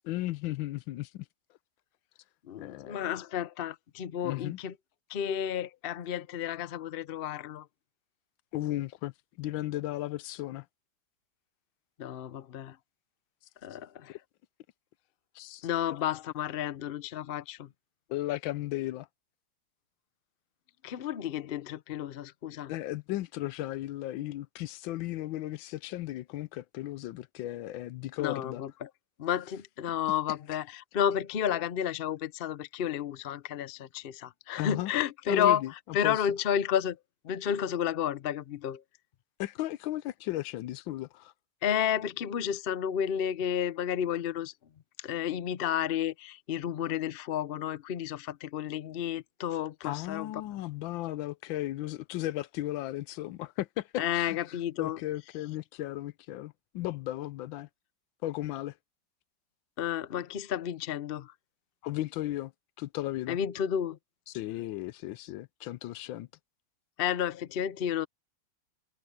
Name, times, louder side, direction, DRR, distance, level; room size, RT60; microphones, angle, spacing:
voice 1, 0.0-1.2 2.6-3.0 4.2-4.6 8.5-9.1 9.4-10.6 15.3-15.7 18.1-19.1 22.7-28.6 34.6-34.9 35.3-36.2 39.4-41.3 49.8-57.7 58.2-58.7 61.8-62.5 62.8-63.4 64.3-66.3, left 15 dB, 85° left, 1.4 m, -35 dB
voice 2, 2.4-4.7 5.1-7.7 12.0-12.8 13.6-14.2 15.6-17.7 20.8-22.7 28.2-28.9 29.2-35.6 35.9-37.0 37.2-38.8 41.6-44.5 45.0-50.3 54.0-55.0 59.8-61.3 63.3-64.0 67.0-68.1, left 9 dB, 70° left, 0.5 m, -31 dB
omnidirectional pair, 2.1 m